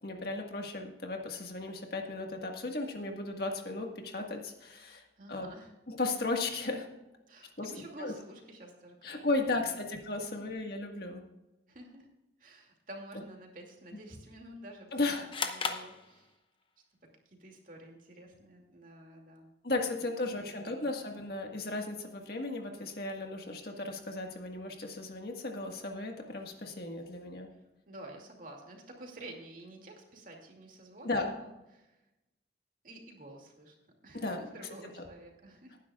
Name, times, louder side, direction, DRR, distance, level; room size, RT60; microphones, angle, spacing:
voice 1, 0.0-5.0 5.3-5.5 5.9-6.9 7.6-8.1 9.0-11.2 14.9-15.2 19.6-27.5 31.0-31.3 34.1-34.4, left 2 dB, 55° left, 3 dB, 1.7 m, -35 dB
voice 2, 5.2-5.7 7.3-9.8 10.2-10.4 11.7-12.1 12.4-15.1 15.4-16.4 17.3-19.5 20.0-20.8 27.9-32.0 32.8-33.8 34.0-35.8, right 1 dB, 45° right, 1 dB, 2.6 m, -50 dB
sound 1, 15.3-16.7, left 5 dB, 30° left, 0.9 m, -36 dB
19.0 x 10.0 x 2.4 m, 0.96 s
head